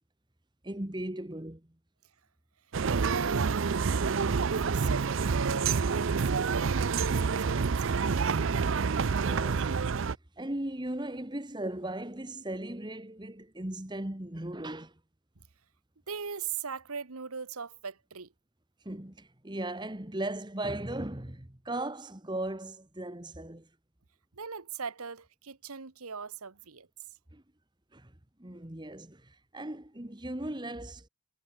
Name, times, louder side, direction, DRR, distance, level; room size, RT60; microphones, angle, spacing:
voice 1, 0.6-1.6 9.1-9.9 10.4-14.9 18.8-23.7 27.3-27.4 27.9-28.1 28.4-31.1, right 1 dB, 20° right, 1.4 m, -37 dB
sound 1, 2.7-10.1, right 5 dB, 60° right, 0.5 m, -28 dB
voice 2, 2.9-4.1 4.6-8.6 16.1-18.3 24.3-26.9, right 5 dB, 85° right, 1.3 m, -39 dB
head